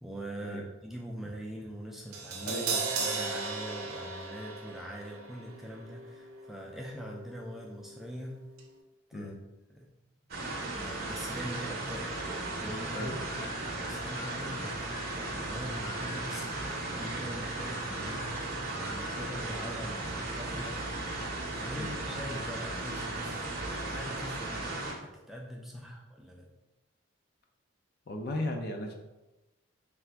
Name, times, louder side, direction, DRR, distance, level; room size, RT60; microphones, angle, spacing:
voice 1, 0.0-8.4 9.1-9.3 9.7-9.9 10.7-12.1 12.6-13.4 13.8-20.8 21.5-24.6 25.0-26.5, equal, ahead, -2 dB, 0.4 m, -43 dB
Crash cymbal, 2.1-8.3 8.6-8.7, right 4 dB, 90° right, 0.6 m, -37 dB
voice 2, 2.4-2.8 9.1-9.4 12.9-13.3 21.8-21.9 25.7-25.9 28.1-28.9, left 1 dB, 50° left, 3 dB, 0.5 m, -36 dB
sound 1, 10.3-24.9, right 2 dB, 45° right, 0.7 m, -36 dB
sound 2, 12.9-19.9, left 4 dB, 80° left, 1.1 m, -49 dB
3.4 x 2.5 x 4.4 m, 1.0 s
head